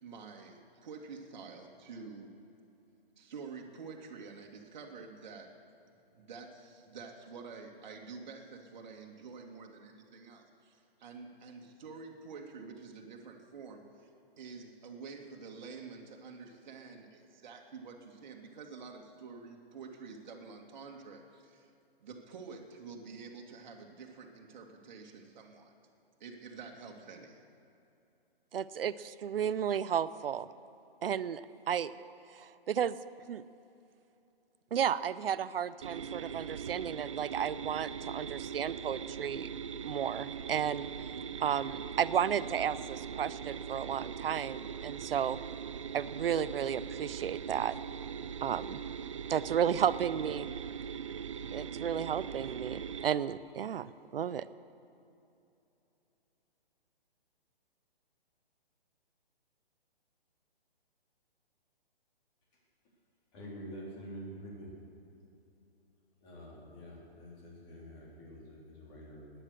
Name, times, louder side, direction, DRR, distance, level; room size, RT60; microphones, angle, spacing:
voice 1, 0.0-2.3 3.2-5.5 6.1-14.1 14.4-21.7 22.0-25.7 26.2-27.4, right 5 dB, 50° right, 1 dB, 2.1 m, -48 dB
voice 2, 28.5-30.5 31.0-31.4 31.7-31.9 32.4-33.0 33.3-33.4 34.7-39.5 39.8-40.9 41.4-45.4 45.9-47.8 48.4-48.8 49.3-50.5 51.5-54.4, right 8 dB, 65° right, 16 dB, 0.7 m, -33 dB
sound 1, 35.8-53.1, right 7 dB, 30° right, 0.4 m, -41 dB
voice 3, 63.3-64.7 66.2-69.3, equal, 25° left, -4 dB, 3.8 m, -47 dB
19.0 x 9.9 x 6.5 m, 2.8 s
hypercardioid pair, 155°, 30 cm